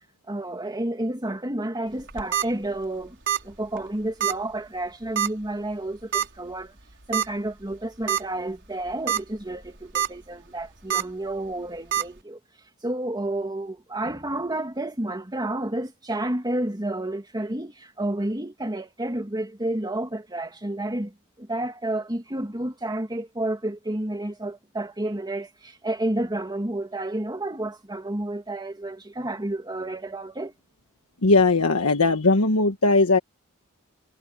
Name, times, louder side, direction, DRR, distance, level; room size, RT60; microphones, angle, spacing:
voice 1, 0.3-3.2 3.4-6.7 7.1-12.4 12.8-30.5, right 1 dB, 20° right, 2.3 m, -30 dB
sound 1, 2.0-2.4 3.3-3.5 3.8-3.9 4.2-4.3 5.2-5.4 6.1-6.3 7.1-7.3 7.7-7.8 8.1-8.2 8.9-9.2 9.6-10.1 10.9-11.0 11.9-12.0, right 9 dB, 55° right, 4.8 m, -24 dB
voice 2, 31.2-33.2, left 3 dB, 70° left, 1.5 m, -19 dB
head